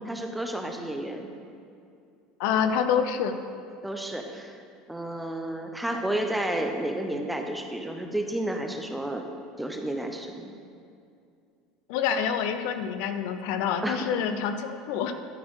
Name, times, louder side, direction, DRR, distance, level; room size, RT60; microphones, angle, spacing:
voice 1, 0.1-1.3 3.8-4.6 4.9-9.3 9.6-10.5 13.8-14.0, right 1 dB, 5° right, 4 dB, 0.5 m, -31 dB
voice 2, 2.4-3.4 11.9-15.1, left 7 dB, 65° left, 8 dB, 0.6 m, -27 dB
12.0 x 4.2 x 4.7 m, 2.4 s
cardioid pair, 155°, 0 cm